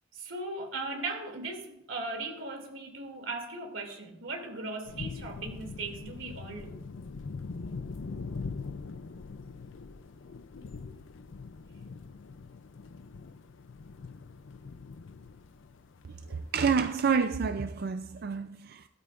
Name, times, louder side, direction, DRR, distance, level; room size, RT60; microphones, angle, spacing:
voice 1, 0.1-6.8 10.4-10.6, right 3 dB, 85° right, 2.7 m, -38 dB
sound 1, 4.9-17.5, left 4 dB, 75° left, 0.5 m, -43 dB
voice 2, 16.5-18.9, right 5 dB, 55° right, 0.4 m, -28 dB
16.0 x 13.5 x 2.5 m
head